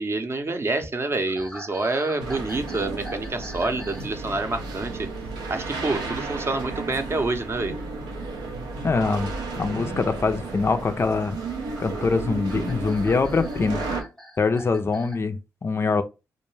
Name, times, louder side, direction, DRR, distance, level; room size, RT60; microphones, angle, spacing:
voice 1, 0.0-5.1 5.5-7.8, right 2 dB, 35° right, 0.6 m, -27 dB
sound 1, 1.3-4.1 4.4-4.7 6.9-7.1 8.4-8.5 10.4-15.2, equal, 5° left, 0.7 m, -44 dB
sound 2, 2.2-14.0, right 3 dB, 90° right, 0.5 m, -33 dB
voice 2, 8.8-9.3 9.6-11.4 11.8-13.8 14.4-16.0, left 4 dB, 35° left, 0.4 m, -24 dB
2.3 x 2.2 x 3.1 m
supercardioid pair, 45°, 7 cm